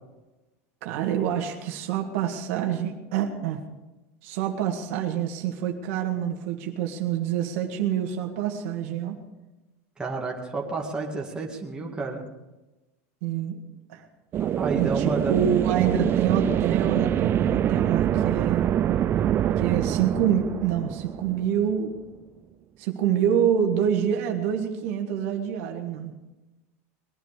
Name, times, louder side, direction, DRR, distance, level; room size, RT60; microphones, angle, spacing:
voice 1, 0.8-3.6 4.2-9.2 13.2-13.6 13.9-14.0 14.7-18.7 19.6-21.9 22.8-26.1, right 9 dB, 65° right, 3 dB, 1.9 m, -26 dB
voice 2, 10.0-12.2 14.4-15.3, right 3 dB, 10° right, -1 dB, 2.2 m, -31 dB
sound 1, 14.3-21.9, right 10 dB, 30° right, 0.4 m, -25 dB
21.0 x 11.5 x 5.0 m, 1.1 s
supercardioid pair, 150°, 8 cm